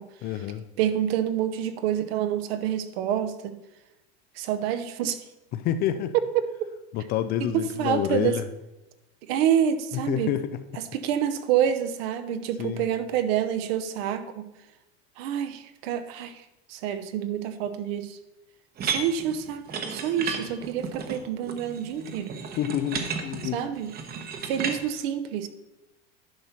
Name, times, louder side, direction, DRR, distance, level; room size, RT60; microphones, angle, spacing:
voice 1, 0.2-0.6 5.5-6.1 6.9-8.4 9.9-10.8 12.6-12.9 22.6-23.6, left 11 dB, 30° left, 11 dB, 0.3 m, -28 dB
voice 2, 0.8-3.6 4.4-5.2 6.3-6.5 7.5-8.4 9.3-10.4 10.9-14.5 15.2-16.4 16.7-18.2 18.8-19.6 19.9-22.4 23.5-24.0 24.4-25.5, right 9 dB, 65° right, 11 dB, 0.9 m, -27 dB
sound 1, 18.8-24.8, right 6 dB, 30° right, 1.0 m, -33 dB
10.5 x 4.2 x 5.8 m, 0.94 s
supercardioid pair, 140°, 33 cm